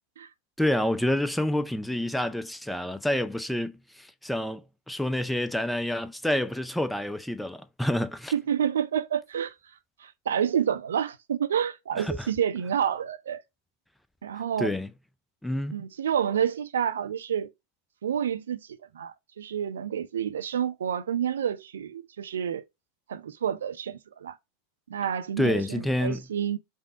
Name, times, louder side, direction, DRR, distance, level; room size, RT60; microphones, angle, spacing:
voice 1, 0.6-8.3 12.0-12.3 14.6-14.9 15.4-15.8 25.4-26.2, left 1 dB, 5° left, 0.4 m, -28 dB
voice 2, 8.3-9.5 10.0-13.4 14.2-14.7 15.7-17.5 18.0-22.6 23.1-24.4 24.9-26.6, right 8 dB, 65° right, 0.5 m, -29 dB
5.2 x 2.1 x 3.7 m
figure-of-eight pair, 90°, 0 cm